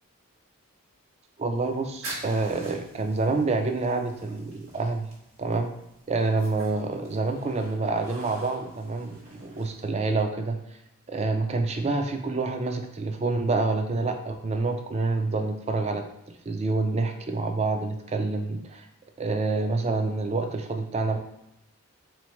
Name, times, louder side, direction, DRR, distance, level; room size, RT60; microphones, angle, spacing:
voice 1, 1.4-5.1 5.4-5.7 6.1-10.6 11.1-16.0 16.5-18.8 19.2-21.2, right 3 dB, 30° right, 5 dB, 0.3 m, -27 dB
sound 1, 1.5-10.2, right 2 dB, 65° right, 1.5 m, -46 dB
3.9 x 3.1 x 3.1 m, 0.84 s
head